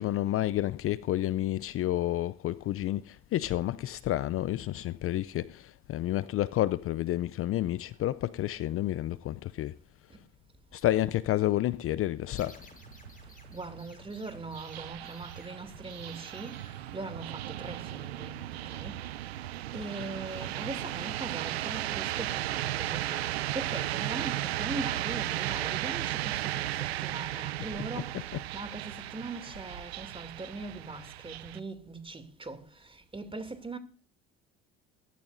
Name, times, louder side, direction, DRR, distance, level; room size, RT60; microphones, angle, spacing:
voice 1, 0.0-9.7 10.7-12.6 28.1-28.4, left 14 dB, 45° left, 0.5 m, -30 dB
sound 1, 12.4-17.8, left 3 dB, 25° left, 6.7 m, -55 dB
sound 2, 12.6-31.6, right 14 dB, 90° right, 0.6 m, -35 dB
voice 2, 13.5-16.6 16.9-19.0 19.7-33.8, right 3 dB, 15° right, 2.6 m, -41 dB
sound 3, 20.3-28.0, left 5 dB, 10° left, 6.4 m, -60 dB
22.0 x 12.5 x 2.6 m
hypercardioid pair, 60°, 31 cm